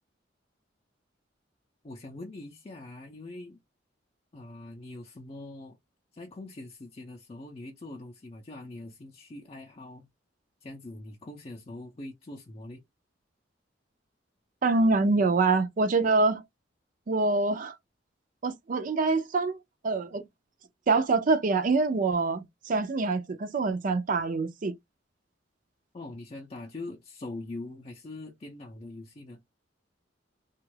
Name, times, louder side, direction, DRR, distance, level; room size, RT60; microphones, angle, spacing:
voice 1, 1.8-3.6 4.3-5.8 6.1-10.1 10.6-12.8 25.9-29.4, left 2 dB, 30° left, 0.5 m, -43 dB
voice 2, 14.6-16.4 17.1-17.8 18.4-19.6 19.8-20.2 20.9-24.7, right 3 dB, 45° right, 0.4 m, -25 dB
3.0 x 2.3 x 3.2 m
head